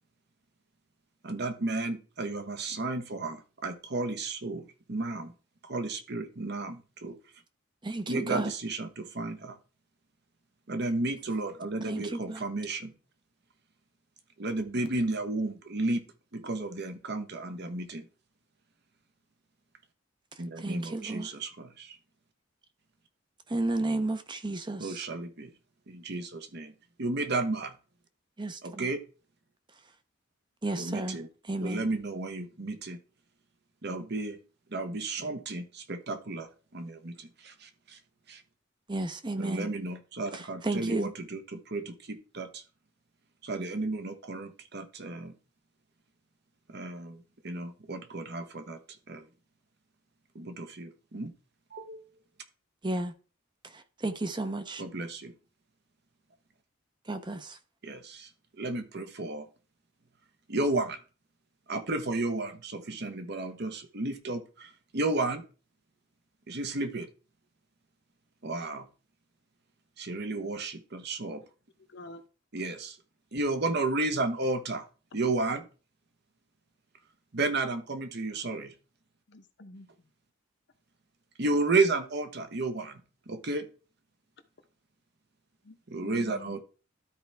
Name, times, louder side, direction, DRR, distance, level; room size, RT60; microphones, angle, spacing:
voice 1, 1.2-5.3 5.6-7.2 8.1-9.6 10.7-12.9 14.4-16.0 16.3-18.0 20.4-22.0 24.8-25.5 25.9-26.7 27.0-27.7 28.6-29.0 30.8-31.3 31.6-33.0 33.8-34.4 34.7-38.0 38.3-38.4 39.4-42.6 43.4-45.3 46.7-48.8 49.1-49.2 50.3-51.3 51.7-52.0 54.8-55.3 57.8-58.3 58.6-59.5 60.5-61.0 61.7-65.4 66.5-67.1 68.4-68.9 70.0-71.4 72.5-73.0 73.3-74.8 75.1-75.6 77.3-78.7 81.4-83.0 83.3-83.7 85.9-86.6, right 2 dB, 55° right, 1.0 m, -33 dB
voice 2, 7.8-8.5 11.8-12.4 20.6-21.3 23.5-25.0 28.4-28.9 30.6-31.8 38.9-39.7 40.3-41.1 52.8-53.1 53.6-54.8 57.1-57.6, right 2 dB, 25° right, 0.7 m, -33 dB
voice 3, 71.9-72.2 79.3-80.1 85.6-86.6, left 1 dB, 60° left, 0.9 m, -48 dB
12.5 x 4.5 x 3.5 m
head